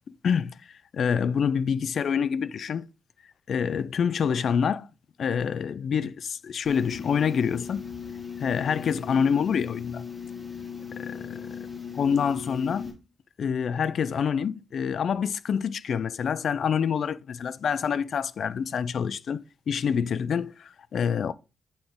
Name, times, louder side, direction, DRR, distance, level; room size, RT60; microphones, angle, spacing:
voice 1, 0.1-0.6 0.9-2.9 3.5-4.9 5.2-7.8 8.4-10.1 11.0-11.5 12.0-12.9 13.4-21.3, left 7 dB, 60° left, 0.3 m, -27 dB
sound 1, 6.6-12.9, left 6 dB, 5° left, 1.6 m, -38 dB
7.9 x 3.9 x 3.5 m
wide cardioid pair, 175°, 0 cm